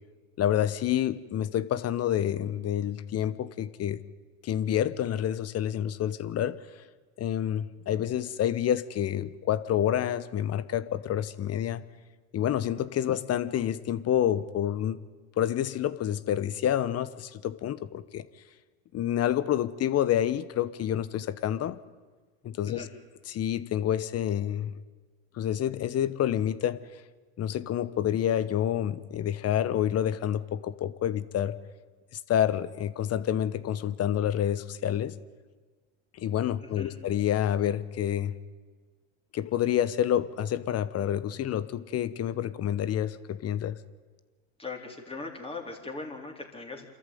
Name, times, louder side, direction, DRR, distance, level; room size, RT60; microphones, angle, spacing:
voice 1, 0.4-4.0 4.4-6.6 7.2-11.8 12.3-15.0 15.4-18.2 18.9-21.8 22.4-22.8 23.3-24.7 25.3-26.8 27.4-31.6 32.3-35.1 36.2-38.4 39.3-43.8, left 10 dB, 40° left, 16 dB, 1.2 m, -28 dB
voice 2, 36.6-37.0 44.6-46.9, left 3 dB, 15° left, 1 dB, 4.1 m, -40 dB
26.0 x 14.0 x 9.4 m, 1.4 s
hypercardioid pair, 95°, 38 cm